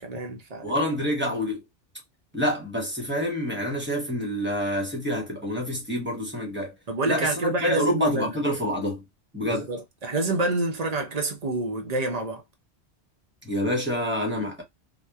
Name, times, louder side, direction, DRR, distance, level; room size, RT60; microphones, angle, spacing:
voice 1, 0.0-0.7 6.9-8.4 9.4-12.4, right 2 dB, 45° right, 0.6 m, -28 dB
voice 2, 0.6-1.6 2.3-6.7 7.1-9.0 9.3-9.7 13.4-14.6, equal, 10° right, 0.8 m, -27 dB
2.8 x 2.1 x 2.2 m
omnidirectional pair, 1.2 m